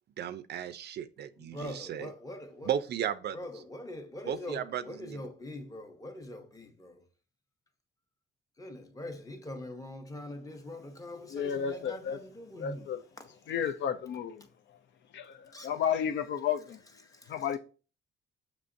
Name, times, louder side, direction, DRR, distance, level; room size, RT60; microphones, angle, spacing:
voice 1, 0.2-2.1 2.7-3.4 4.3-5.2, right 9 dB, 60° right, 0.4 m, -35 dB
voice 2, 1.3-2.8 3.3-7.1 8.6-13.5 15.5-15.8 17.0-17.5, left 1 dB, 15° left, 0.8 m, -43 dB
voice 3, 11.3-12.2 12.6-13.0 13.5-14.4 15.1-16.8 17.3-17.6, left 8 dB, 65° left, 0.5 m, -32 dB
6.8 x 2.9 x 2.6 m
cardioid pair, 90°, 20 cm